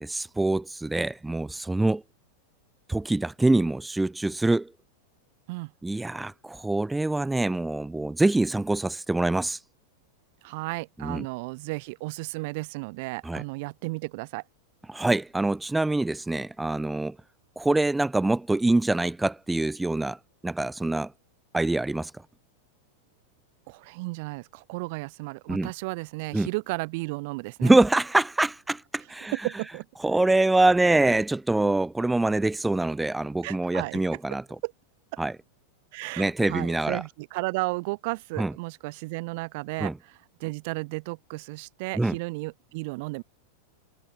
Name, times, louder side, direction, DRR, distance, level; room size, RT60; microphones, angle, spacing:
voice 1, 0.0-2.0 2.9-4.7 5.8-9.6 11.0-11.2 13.2-13.4 14.9-17.1 17.6-21.1 21.5-22.1 25.5-25.7 26.3-26.5 27.6-29.3 30.0-34.4 35.2-35.3 36.2-37.0 38.4-38.5 39.8-39.9 41.9-42.2, right 2 dB, 5° right, 1.1 m, -25 dB
voice 2, 10.4-14.4 23.7-27.7 29.4-29.9 33.4-34.0 34.3-34.7 35.1-35.2 35.9-43.2, right 26 dB, 50° right, 3.7 m, -34 dB
figure-of-eight pair, 90°, 0 cm